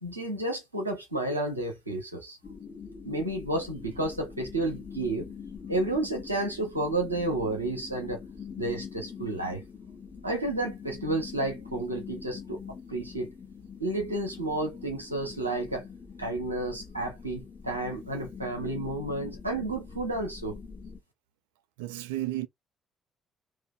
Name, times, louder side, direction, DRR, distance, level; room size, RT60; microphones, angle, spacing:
voice 1, 0.0-2.4 3.0-5.3 5.7-8.2 8.6-9.6 10.2-12.6 12.9-13.3 13.8-15.8 16.2-20.6, right 2 dB, 90° right, 0.8 m, -31 dB
sound 1, 2.4-21.0, left 6 dB, 40° left, 1.0 m, -44 dB
voice 2, 21.8-22.5, right 15 dB, 75° right, 0.3 m, -32 dB
3.0 x 2.4 x 3.7 m
figure-of-eight pair, 45°, 0 cm